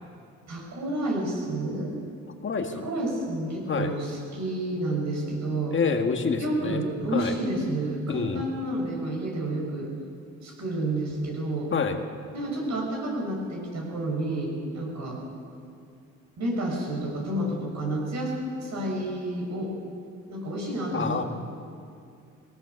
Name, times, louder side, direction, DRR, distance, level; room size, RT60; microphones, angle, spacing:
voice 1, 0.5-2.0 2.7-5.8 6.4-9.9 10.4-11.7 12.3-15.2 16.4-18.3 18.6-19.7 20.3-21.3, right 1 dB, 65° right, -1 dB, 7.1 m, -30 dB
voice 2, 2.4-2.9 3.7-3.9 5.7-6.8 7.1-7.4 8.1-8.5 11.7-12.0 20.9-21.2, left 5 dB, 40° left, 4 dB, 1.8 m, -27 dB
20.5 x 18.0 x 7.0 m, 2.4 s
cardioid pair, 90°, 30 cm